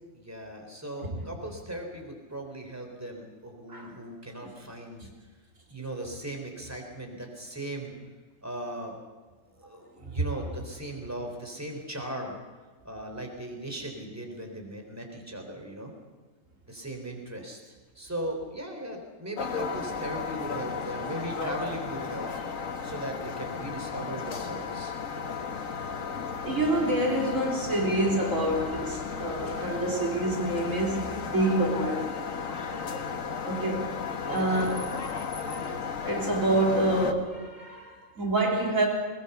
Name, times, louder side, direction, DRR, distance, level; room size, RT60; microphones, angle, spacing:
voice 1, 0.1-5.1 5.7-7.9 8.4-9.0 9.6-12.4 12.8-15.9 16.7-22.3 22.8-24.9 32.7-33.1 34.3-34.9, right 1 dB, 10° right, 3.7 m, -38 dB
sound 1, 19.4-37.1, left 5 dB, 85° left, 1.8 m, -34 dB
voice 2, 26.4-32.1 33.4-34.0 34.3-34.8 36.0-38.9, right 1 dB, 80° right, 4.0 m, -27 dB
21.0 x 21.0 x 7.0 m
omnidirectional pair, 1.3 m